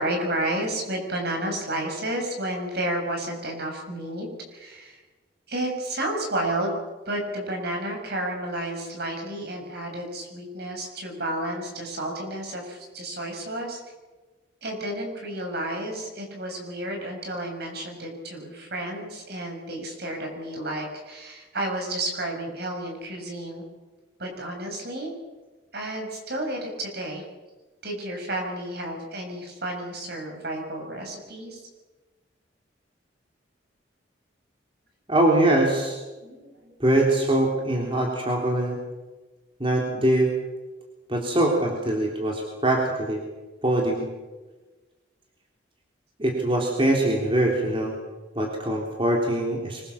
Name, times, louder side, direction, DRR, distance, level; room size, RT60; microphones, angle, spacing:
voice 1, 0.0-5.0 5.5-6.7 7.1-13.8 14.6-23.6 24.2-25.1 25.7-27.2 27.8-31.6 36.2-36.7, right 1 dB, 55° right, 2 dB, 6.9 m, -31 dB
voice 2, 35.1-36.0 36.8-38.8 39.6-40.3 41.1-43.2 43.6-44.1 46.2-47.9 48.3-49.9, right 1 dB, 30° right, -1 dB, 3.4 m, -23 dB
25.0 x 22.0 x 7.2 m, 1.2 s
head